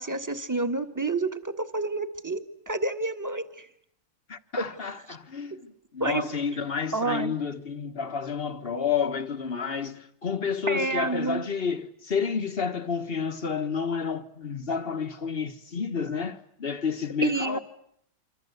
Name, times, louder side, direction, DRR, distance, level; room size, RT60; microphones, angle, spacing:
voice 1, 0.0-3.7 6.0-6.2 6.9-7.3 10.7-11.4 17.2-17.6, right 3 dB, 10° right, 1.5 m, -29 dB
voice 2, 4.3-17.6, left 6 dB, 30° left, 1.4 m, -30 dB
27.0 x 26.0 x 8.2 m
omnidirectional pair, 2.2 m